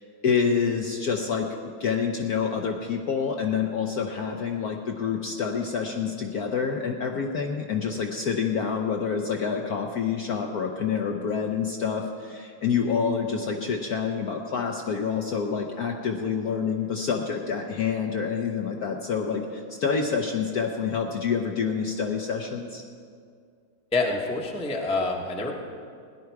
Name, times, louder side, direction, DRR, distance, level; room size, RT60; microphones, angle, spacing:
voice 1, 0.0-1.5 1.8-22.8, left 6 dB, 60° left, 2 dB, 1.1 m, -27 dB
voice 2, 23.9-25.5, left 2 dB, 5° left, 0 dB, 0.7 m, -27 dB
17.5 x 10.5 x 4.7 m, 2.2 s
omnidirectional pair, 2.3 m